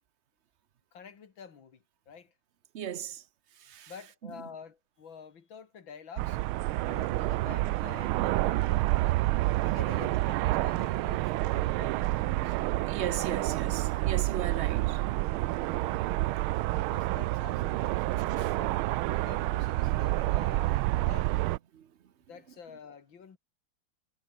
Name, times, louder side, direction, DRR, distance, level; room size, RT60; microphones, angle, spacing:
voice 1, 0.9-2.3 3.9-6.4 6.8-9.3 9.6-12.6 16.8-18.8 19.1-21.3 22.3-23.4, left 6 dB, 70° left, 2.9 m, -48 dB
voice 2, 2.7-3.2 3.6-3.9 12.1-15.0 18.3-18.5 21.7-21.9, right 9 dB, 70° right, 0.6 m, -37 dB
sound 1, 6.2-21.6, right 18 dB, 85° right, 1.4 m, -28 dB
omnidirectional pair, 2.2 m